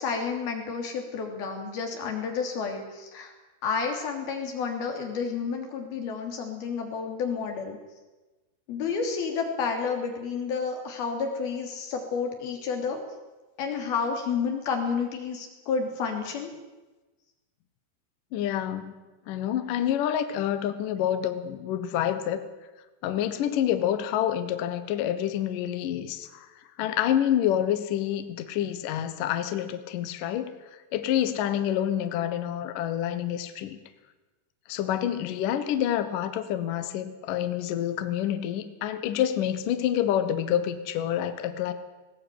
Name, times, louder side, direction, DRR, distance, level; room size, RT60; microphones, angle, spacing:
voice 1, 0.0-3.3 3.6-7.8 8.7-13.0 13.6-16.5, left 5 dB, 50° left, 3 dB, 4.7 m, -30 dB
voice 2, 18.3-19.0 19.3-22.4 23.0-26.5 26.8-30.6 30.9-33.8 34.7-41.7, left 10 dB, 80° left, 10 dB, 1.9 m, -27 dB
19.5 x 18.5 x 9.3 m, 1.2 s
omnidirectional pair, 5.8 m